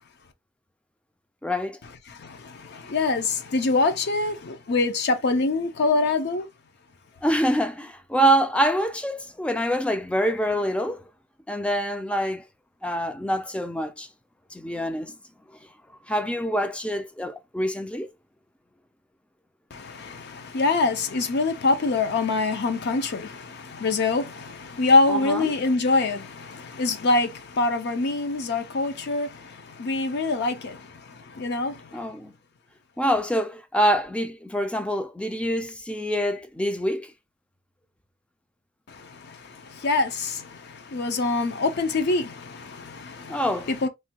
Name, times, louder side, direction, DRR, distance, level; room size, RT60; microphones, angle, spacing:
voice 1, 1.4-1.8 7.2-11.0 11.5-12.4 12.8-14.1 14.5-15.2 16.1-18.1 25.1-25.5 31.9-32.3 33.0-37.1 43.3-43.7, equal, 5° left, 0.3 m, -25 dB
voice 2, 2.1-6.5 19.7-32.0 38.9-43.4 43.7-43.9, left 3 dB, 55° left, 0.5 m, -25 dB
3.2 x 2.2 x 2.8 m
head